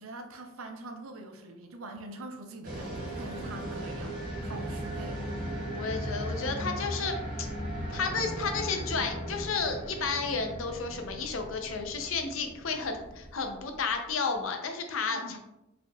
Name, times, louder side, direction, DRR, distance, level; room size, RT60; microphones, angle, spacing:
voice 1, 0.0-5.2 15.1-15.4, right 2 dB, 80° right, 6 dB, 0.6 m, -44 dB
sound 1, 2.6-13.4, right 1 dB, 45° right, 1.3 m, -37 dB
voice 2, 5.7-7.5 7.9-15.4, left 4 dB, 70° left, 5 dB, 0.6 m, -32 dB
sound 2, 7.4-14.5, equal, 15° left, 0.8 m, -51 dB
4.7 x 3.6 x 2.3 m, 0.93 s
head